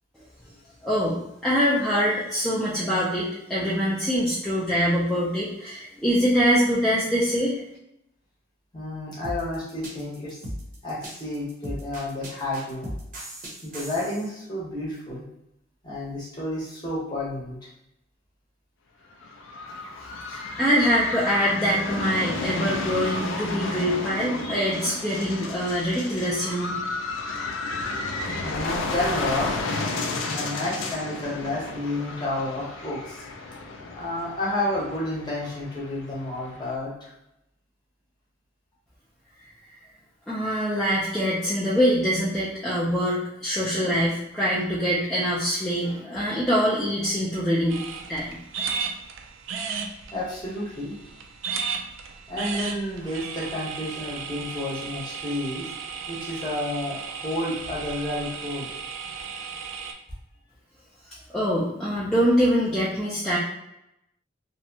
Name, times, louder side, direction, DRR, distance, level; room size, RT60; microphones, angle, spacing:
voice 1, 0.8-7.6 20.3-26.7 40.3-47.8 48.1-48.3 61.3-63.4, equal, 5° left, -9 dB, 0.3 m, -24 dB
voice 2, 8.7-10.4 10.8-12.9 13.6-15.2 15.8-17.6 28.3-29.5 29.9-33.2 34.0-36.9 50.1-50.9 52.3-55.7 56.1-58.7, left 1 dB, 20° left, -6 dB, 0.8 m, -30 dB
sound 1, 9.2-14.3, equal, 45° right, 0.6 m, -37 dB
sound 2, 19.1-36.8, left 3 dB, 80° left, 0.4 m, -32 dB
sound 3, 47.7-59.9, right 6 dB, 80° right, 0.3 m, -35 dB
2.7 x 2.1 x 2.6 m, 0.84 s
head